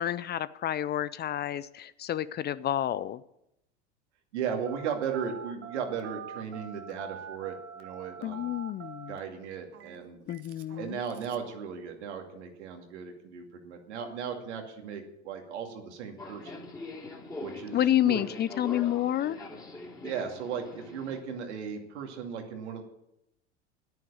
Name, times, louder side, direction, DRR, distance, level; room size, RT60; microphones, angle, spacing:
voice 1, 0.0-3.2 8.2-9.2 10.3-11.0 17.7-19.4, left 12 dB, 30° left, 17 dB, 0.5 m, -29 dB
voice 2, 4.3-8.5 9.1-10.2 10.8-16.7 17.4-18.2 20.0-22.8, right 7 dB, 75° right, 4 dB, 2.4 m, -36 dB
Telephone, 4.7-11.5, right 7 dB, 40° right, 1.4 m, -45 dB
Subway metro underground, 16.2-21.2, left 2 dB, 10° left, 3.2 m, -43 dB
10.5 x 9.3 x 8.7 m, 0.84 s
hypercardioid pair, 80°, 35 cm